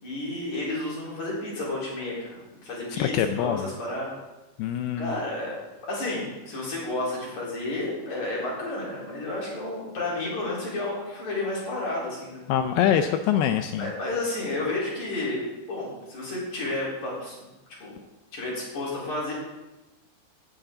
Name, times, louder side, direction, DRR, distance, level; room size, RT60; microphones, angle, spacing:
voice 1, 0.0-4.1 5.0-5.5 5.9-12.5 13.8-17.4 17.8-17.9 18.3-19.3, left 2 dB, 45° left, -6 dB, 5.1 m, -31 dB
voice 2, 3.0-3.7 4.6-5.2 12.5-13.9, left 9 dB, 80° left, 8 dB, 2.4 m, -24 dB
17.5 x 9.9 x 3.9 m, 1.1 s
omnidirectional pair, 5.0 m